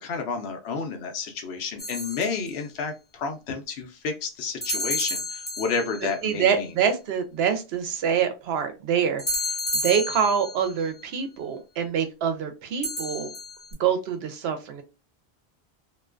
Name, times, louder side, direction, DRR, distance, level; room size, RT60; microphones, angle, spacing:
voice 1, 0.0-6.7, left 5 dB, 85° left, 4 dB, 0.9 m, -31 dB
sound 1, 1.8-2.5 4.6-6.1 9.2-10.7 12.8-13.7, left 1 dB, 35° left, 1.1 m, -30 dB
voice 2, 6.2-9.2 9.7-13.3 13.8-14.8, right 7 dB, 75° right, 7 dB, 0.8 m, -25 dB
2.4 x 2.2 x 2.3 m, 0.28 s
omnidirectional pair, 1.1 m